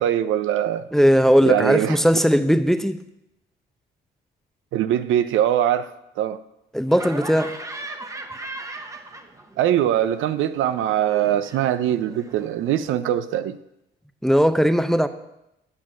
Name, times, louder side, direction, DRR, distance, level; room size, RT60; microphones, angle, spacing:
voice 1, 0.0-0.8 1.4-2.0 4.7-5.9 6.2-6.4 9.6-13.6, right 11 dB, 80° right, 0.5 m, -22 dB
voice 2, 0.9-3.0 6.7-7.5 14.2-15.1, equal, ahead, 0.5 m, -18 dB
Laughter, 6.9-9.7 10.0-12.9, right 2 dB, 15° right, 0.9 m, -38 dB
8.6 x 6.3 x 6.1 m
cardioid pair, 90°, 20 cm